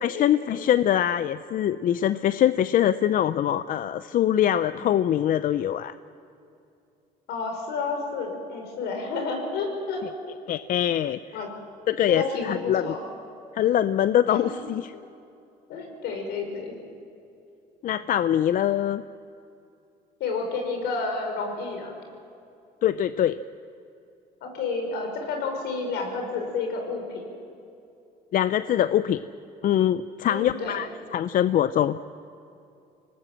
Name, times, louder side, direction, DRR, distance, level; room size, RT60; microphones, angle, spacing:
voice 1, 0.0-5.9 10.5-11.2 11.9-12.9 13.5-14.9 17.8-19.0 22.8-23.4 28.3-29.2 29.6-32.0, left 11 dB, 55° left, 14 dB, 0.6 m, -23 dB
voice 2, 7.3-10.0 11.3-11.5 12.1-13.0 14.3-14.5 15.7-16.7 20.2-21.9 24.4-27.2 30.3-30.8, left 4 dB, 80° left, 3 dB, 5.7 m, -30 dB
26.0 x 19.0 x 7.6 m, 2.7 s
cardioid pair, 110°, 17 cm